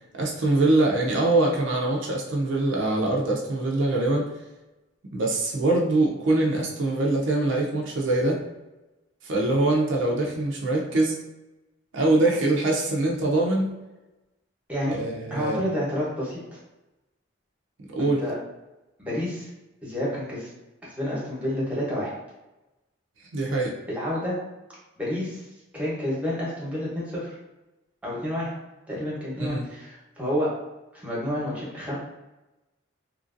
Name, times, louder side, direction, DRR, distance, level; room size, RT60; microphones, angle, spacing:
voice 1, 0.2-4.3 5.1-8.4 9.2-11.2 11.9-13.7 14.9-15.6 17.9-18.2 23.3-23.7 29.3-29.6, right 2 dB, 75° right, -1 dB, 0.5 m, -23 dB
voice 2, 15.3-16.4 18.0-18.3 19.0-19.5 19.8-20.5 20.8-22.1 23.9-24.4 25.0-25.5 25.7-27.3 28.0-28.5 28.9-30.5 30.9-32.0, equal, 5° right, -7 dB, 0.9 m, -29 dB
2.9 x 2.5 x 2.5 m, 1.0 s
head